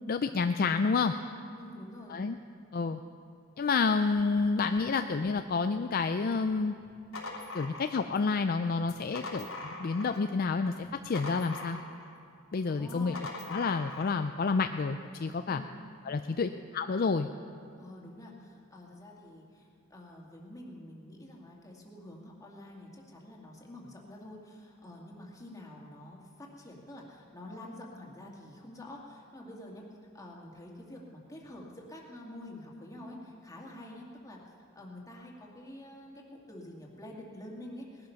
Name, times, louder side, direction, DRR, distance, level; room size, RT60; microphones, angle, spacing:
voice 1, 0.1-1.1 2.1-2.4 2.7-3.0 3.6-6.7 7.5-11.8 12.5-13.1 13.5-15.6 16.1-17.3, left 4 dB, 45° left, 8 dB, 0.4 m, -29 dB
voice 2, 1.6-2.2 12.7-13.3 15.5-15.9 17.8-26.3 26.6-29.9 30.1-38.1, left 1 dB, 15° left, -2 dB, 2.2 m, -47 dB
sound 1, 6.8-8.3 8.8-10.3 10.6-12.1 12.8-14.2, left 2 dB, 90° left, 3.2 m, -42 dB
19.0 x 11.5 x 5.8 m, 2.5 s
head